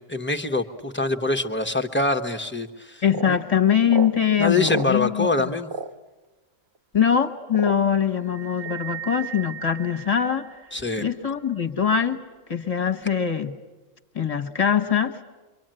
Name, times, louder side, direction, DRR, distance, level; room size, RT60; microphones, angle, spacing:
voice 1, 0.0-3.4 4.4-5.7 10.7-11.0, left 3 dB, 10° left, 6 dB, 1.0 m, -25 dB
voice 2, 3.0-5.5 6.9-10.5 11.0-12.2 12.5-13.6 14.1-15.2, left 8 dB, 30° left, 5 dB, 1.4 m, -22 dB
sound 1, 3.1-3.4 3.9-4.1 4.6-4.9 5.7-5.9 6.7-6.8 7.5-8.0 8.6-8.8, right 4 dB, 55° right, 1.3 m, -31 dB
sound 2, 8.2-10.9, right 11 dB, 10° right, 1.5 m, -38 dB
26.0 x 24.5 x 9.1 m, 1.2 s
omnidirectional pair, 1.4 m